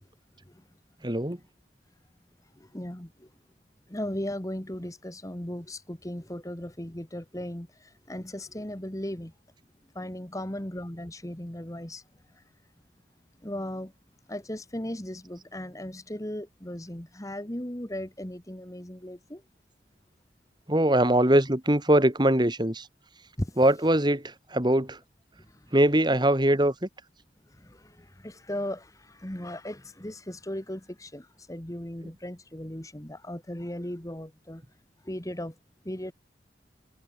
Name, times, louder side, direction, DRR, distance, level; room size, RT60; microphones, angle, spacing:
voice 1, 1.0-1.4 20.7-22.9 23.6-25.0 25.7-26.9, right 1 dB, 25° right, 2.2 m, -22 dB
voice 2, 2.7-3.1 3.9-7.7 8.1-9.3 9.9-12.0 13.4-13.9 14.3-19.4 23.4-23.5 27.6-27.9 28.2-34.6 35.1-35.5 35.8-36.1, left 1 dB, 20° left, 1.7 m, -36 dB
head